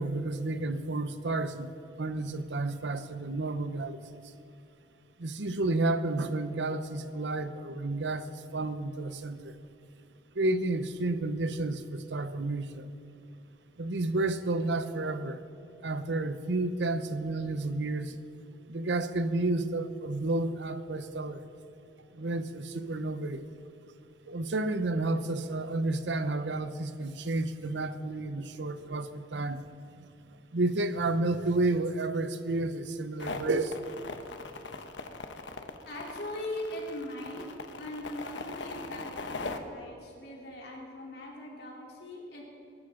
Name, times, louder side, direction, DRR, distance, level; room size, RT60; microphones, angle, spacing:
voice 1, 0.0-4.3 5.2-9.5 10.3-12.9 13.8-15.4 15.8-18.2 18.7-21.5 22.1-23.4 24.3-29.6 30.0-30.1 30.5-33.8, right 2 dB, 80° right, 11 dB, 0.8 m, -31 dB
sound 1, 33.2-39.6, left 3 dB, 85° left, 1.0 m, -40 dB
voice 2, 35.9-37.4 37.8-42.4, left 1 dB, 65° left, -3 dB, 3.6 m, -40 dB
22.5 x 12.0 x 3.8 m, 2.8 s
head